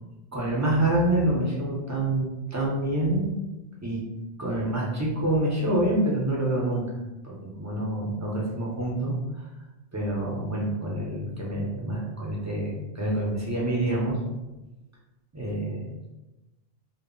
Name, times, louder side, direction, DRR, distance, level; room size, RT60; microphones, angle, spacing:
voice 1, 0.3-3.3 3.8-4.0 4.4-6.8 7.2-9.5 9.9-14.2 15.3-15.9, right 1 dB, 25° right, -5 dB, 0.4 m, -27 dB
2.0 x 2.0 x 3.6 m, 1.0 s
omnidirectional pair, 1.0 m